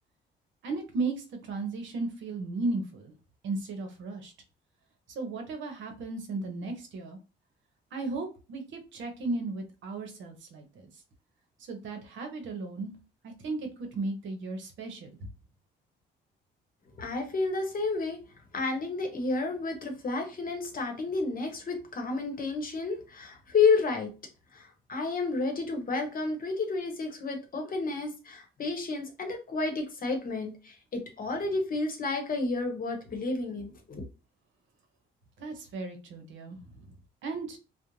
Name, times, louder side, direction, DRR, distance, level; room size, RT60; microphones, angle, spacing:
voice 1, 0.6-3.1 3.4-4.3 5.1-7.2 7.9-10.9 11.7-12.9 13.2-15.1 35.4-37.0 37.2-37.6, right 3 dB, 75° right, 5 dB, 0.7 m, -35 dB
voice 2, 17.0-18.2 18.5-24.1 24.5-34.0, left 4 dB, 45° left, 4 dB, 0.9 m, -31 dB
2.5 x 2.0 x 3.0 m, 0.31 s
cardioid pair, 90°, 20 cm